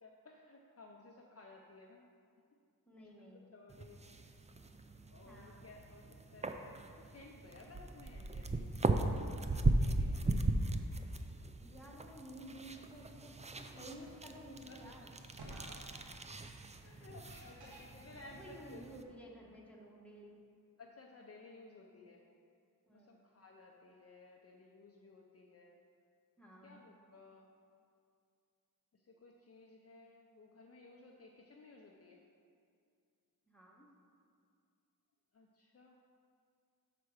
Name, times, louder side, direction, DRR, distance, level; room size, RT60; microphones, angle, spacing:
voice 1, 0.0-2.1 3.5-4.0 5.1-8.7 9.5-10.4 14.0-14.1 14.7-14.8 15.7-16.0 16.8-18.8 20.8-22.2 22.9-25.8 26.6-27.5 29.1-32.2 35.3-36.0, left 3 dB, 40° left, 0 dB, 0.6 m, -57 dB
voice 2, 2.9-3.4 4.1-4.2 5.2-5.6 11.5-15.1 18.2-20.4 22.9-23.3 26.4-26.8 33.5-33.9, right 1 dB, 5° left, -3 dB, 1.3 m, -53 dB
sound 1, 3.7-19.0, right 2 dB, 20° right, 0.4 m, -38 dB
sound 2, 14.1-14.2 15.4-15.7 17.3-17.8, right 1 dB, 85° right, 1.3 m, -49 dB
5.8 x 4.6 x 6.4 m, 2.3 s
wide cardioid pair, 75°, 37 cm